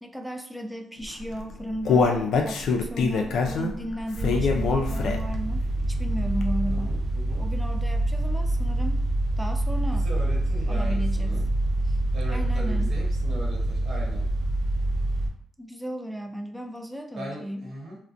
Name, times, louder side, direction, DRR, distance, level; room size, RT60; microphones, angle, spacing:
voice 1, 0.0-2.1 2.4-6.9 7.4-9.0 9.4-10.1 10.6-11.4 11.9-12.0 12.3-12.9 15.6-17.7, equal, ahead, 5 dB, 0.3 m, -35 dB
Human voice, 1.2-5.4 5.8-5.9 6.4-6.5, left 5 dB, 70° left, 0.3 m, -24 dB
sound 1, 4.2-15.3, right 1 dB, 75° right, 0.5 m, -26 dB
voice 2, 6.7-7.4 9.9-11.4 12.1-14.3 17.1-18.0, right 1 dB, 55° right, -3 dB, 1.0 m, -39 dB
2.4 x 2.0 x 2.5 m, 0.64 s
cardioid pair, 90°, 0 cm